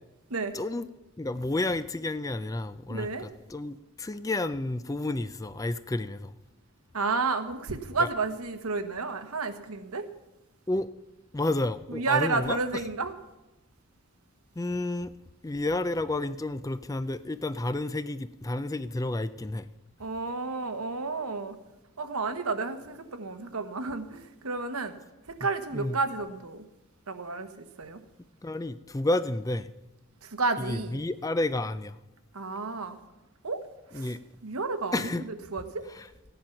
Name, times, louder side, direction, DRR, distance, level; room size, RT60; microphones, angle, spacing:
voice 1, 0.5-0.9 1.2-6.3 8.0-8.1 10.7-10.9 11.3-12.8 14.6-15.1 15.4-19.7 25.7-26.0 28.4-29.7 30.6-32.0 33.9-34.2 34.9-35.3 35.9-36.1, left 2 dB, 15° left, 0.4 m, -31 dB
voice 2, 2.9-3.3 6.9-10.1 11.9-13.1 20.0-21.6 22.0-25.0 25.3-26.6 27.1-28.0 30.2-31.0 32.3-33.0 33.4-33.6 33.9-34.2 34.4-35.1 35.5-35.8, right 3 dB, 85° right, 1.2 m, -31 dB
15.5 x 10.5 x 5.9 m
head